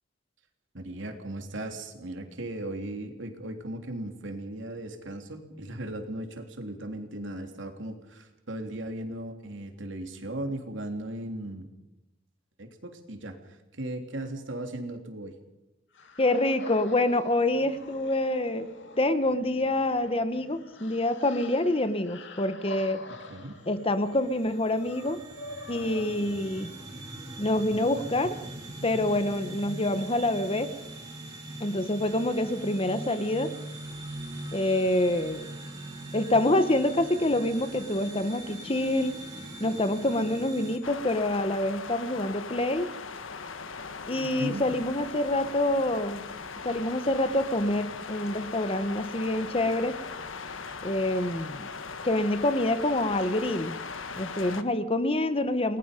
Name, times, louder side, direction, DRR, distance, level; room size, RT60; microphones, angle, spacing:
voice 1, 0.7-11.7 12.6-15.3 23.3-23.6 44.2-44.6, right 1 dB, 70° right, 4 dB, 3.3 m, -37 dB
sound 1, 15.9-27.0, left 2 dB, 65° left, 2.1 m, -47 dB
voice 2, 16.2-18.7 19.0-23.0 23.7-25.2 25.7-26.7 27.4-28.4 28.8-30.7 31.6-33.5 34.5-35.5 36.1-39.1 39.6-42.9 44.1-46.2 46.6-50.0 50.8-51.7 52.0-53.8 54.2-55.8, left 1 dB, 30° left, 11 dB, 1.2 m, -26 dB
sound 2, 23.0-40.8, right 1 dB, 20° right, 5.9 m, -42 dB
sound 3, 40.8-54.6, left 5 dB, 85° left, 1.5 m, -39 dB
29.5 x 20.5 x 5.3 m, 0.93 s
head